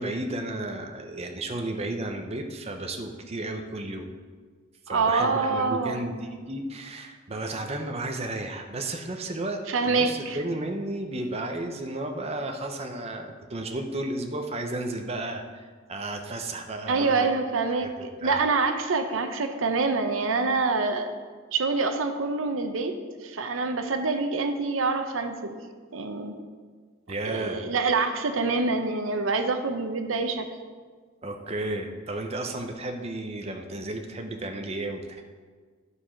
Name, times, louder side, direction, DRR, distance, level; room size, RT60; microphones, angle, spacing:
voice 1, 0.0-4.1 4.9-17.3 17.8-17.9 18.2-18.4 27.1-27.6 31.2-35.2, right 2 dB, 30° right, 4 dB, 0.7 m, -33 dB
voice 2, 4.9-6.0 9.7-10.4 16.9-21.1 21.5-22.9 23.2-25.6 25.9-26.4 27.2-30.5, right 4 dB, 85° right, 7 dB, 0.8 m, -26 dB
11.5 x 4.8 x 5.7 m, 1.5 s
head